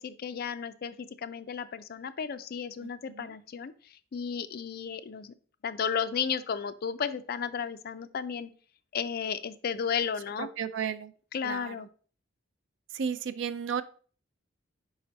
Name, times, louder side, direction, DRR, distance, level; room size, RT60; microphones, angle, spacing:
voice 1, 0.0-3.7 4.1-5.3 5.6-8.5 8.9-10.5 11.3-11.9, left 7 dB, 50° left, 13 dB, 0.4 m, -33 dB
voice 2, 2.8-3.4 10.4-11.1 11.4-11.9 12.9-13.8, right 7 dB, 65° right, 13 dB, 0.4 m, -34 dB
5.0 x 4.9 x 4.0 m, 0.42 s
head